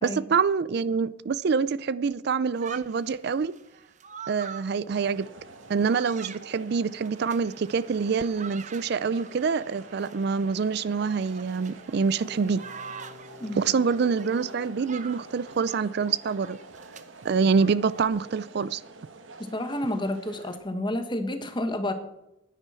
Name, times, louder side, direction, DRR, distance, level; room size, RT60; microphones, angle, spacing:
voice 1, 0.0-3.5 4.3-5.3 5.7-12.6 13.6-16.6 17.2-18.8, right 5 dB, 55° right, 0.4 m, -26 dB
sound 1, 2.5-18.1, right 7 dB, 40° right, 0.8 m, -46 dB
sound 2, 4.9-20.6, right 3 dB, 75° right, 1.3 m, -48 dB
Bowed string instrument, 11.8-16.2, left 5 dB, 5° left, 4.2 m, -51 dB
voice 2, 13.4-13.7 19.4-21.9, left 1 dB, 25° left, 1.4 m, -30 dB
10.0 x 10.0 x 6.2 m
head